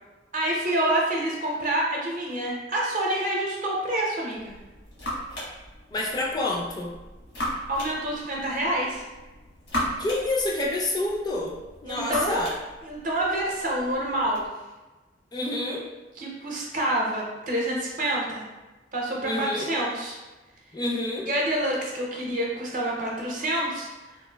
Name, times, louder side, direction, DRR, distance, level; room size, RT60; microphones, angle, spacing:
voice 1, 0.3-4.6 7.7-9.1 11.9-12.4 12.8-14.5 16.1-18.5 18.9-20.2 21.3-23.9, right 1 dB, 50° right, -3 dB, 0.6 m, -27 dB
sound 1, 4.3-14.5, equal, 90° left, 1.0 m, -37 dB
voice 2, 5.9-6.9 10.0-11.5 11.8-12.5 15.3-15.9 19.2-19.7 20.7-21.3, left 2 dB, 25° left, -2 dB, 0.4 m, -28 dB
3.1 x 2.4 x 2.2 m, 1.2 s
head